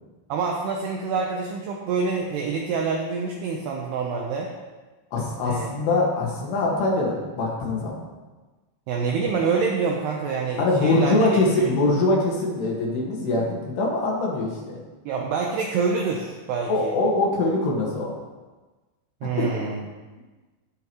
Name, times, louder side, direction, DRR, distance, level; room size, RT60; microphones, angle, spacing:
voice 1, 0.3-4.5 5.5-5.7 8.9-11.7 15.1-16.9 19.2-19.8, right 5 dB, 75° right, 0 dB, 2.5 m, -26 dB
voice 2, 5.1-8.1 9.1-9.3 10.6-14.8 16.7-18.1 19.4-19.5, left 2 dB, 65° left, -3 dB, 3.5 m, -23 dB
18.5 x 6.2 x 3.0 m, 1.2 s
omnidirectional pair, 5.5 m